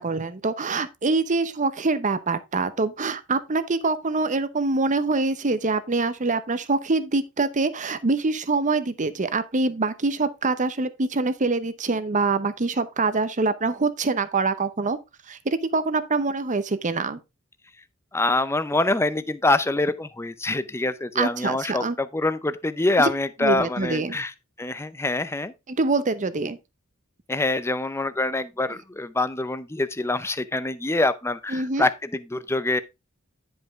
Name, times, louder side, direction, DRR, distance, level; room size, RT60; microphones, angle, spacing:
voice 1, 0.0-15.0 15.3-17.2 21.1-22.0 23.0-23.1 23.4-24.2 25.7-26.6 31.5-31.9, right 3 dB, 35° right, 0.8 m, -25 dB
voice 2, 18.1-24.3 24.6-25.5 27.3-32.8, left 2 dB, 10° left, 0.6 m, -25 dB
10.0 x 5.3 x 3.5 m
head